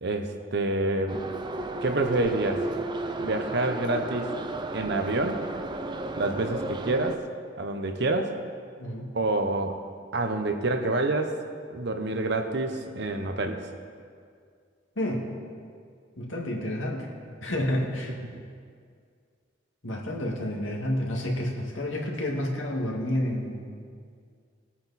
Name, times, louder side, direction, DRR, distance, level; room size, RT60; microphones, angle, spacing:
voice 1, 0.0-1.2 1.8-2.7 3.2-4.4 4.7-5.4 6.2-7.2 7.6-8.3 9.1-9.8 10.1-11.3 11.7-13.7, right 2 dB, 60° right, 6 dB, 1.0 m, -27 dB
Subway metro underground, 1.1-7.2, right 2 dB, 25° right, 0.6 m, -33 dB
voice 2, 15.0-15.3 16.2-17.1 17.4-18.1 19.8-23.7, left 1 dB, 85° left, -1 dB, 2.2 m, -29 dB
20.0 x 8.6 x 4.2 m, 2.1 s
head